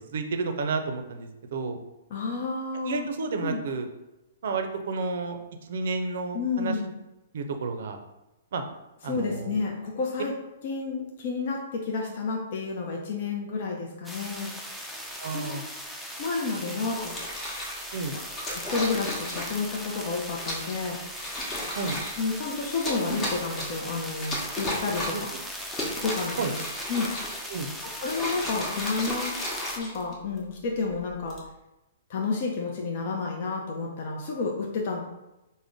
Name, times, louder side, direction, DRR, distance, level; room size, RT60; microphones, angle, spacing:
voice 1, 0.1-1.8 2.9-3.9 4.4-5.4 5.6-6.7 7.3-8.0 8.5-8.6 9.0-9.6 15.2-15.6 16.7-16.8 17.9-18.2 21.7-22.0 25.1-25.2 26.4-26.5 27.5-27.7, right 4 dB, 65° right, 6 dB, 0.4 m, -31 dB
voice 2, 2.1-3.1 3.4-3.6 6.3-6.9 9.0-10.3 10.6-14.5 15.3-15.6 16.2-17.2 18.5-21.0 22.2-25.3 26.0-26.6 26.9-27.1 28.0-29.3 29.7-31.4 32.1-35.0, left 4 dB, 55° left, -1 dB, 0.5 m, -30 dB
sound 1, 14.0-29.8, equal, ahead, 0.4 m, -39 dB
sound 2, 17.1-17.8 18.4-19.7 20.4-20.7 21.1-22.2 22.7-23.9 24.2-25.3 25.6-27.6 28.0-30.4 31.1-31.5, left 1 dB, 20° left, 0.9 m, -34 dB
3.6 x 2.1 x 3.6 m, 0.97 s
hypercardioid pair, 130°, 0 cm